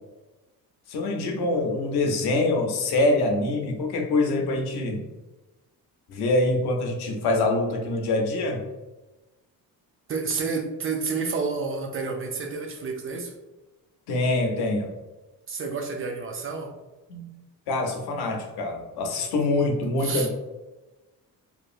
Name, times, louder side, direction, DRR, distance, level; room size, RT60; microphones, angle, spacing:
voice 1, 0.9-5.1 6.1-8.6 14.1-14.9 17.1-17.3 17.7-20.3, left 2 dB, 85° left, 2 dB, 0.7 m, -25 dB
voice 2, 10.1-13.3 15.5-16.7 20.0-20.3, right 4 dB, 35° right, 3 dB, 0.4 m, -29 dB
2.8 x 2.3 x 2.5 m, 1.1 s
cardioid pair, 105°, 37 cm